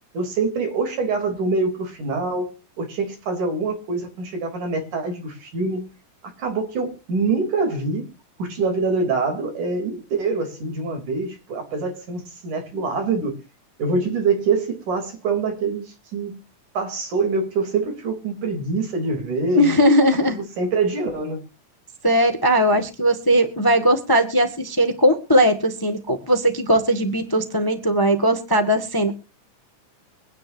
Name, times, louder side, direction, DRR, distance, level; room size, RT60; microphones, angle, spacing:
voice 1, 0.1-2.5 2.8-5.8 6.4-8.1 8.4-13.4 13.8-16.4 16.7-19.8 20.3-21.4, right 3 dB, 85° right, 4.8 m, -25 dB
voice 2, 19.6-20.4 22.0-29.1, equal, 10° left, 1.1 m, -19 dB
24.0 x 10.0 x 2.7 m
omnidirectional pair, 3.5 m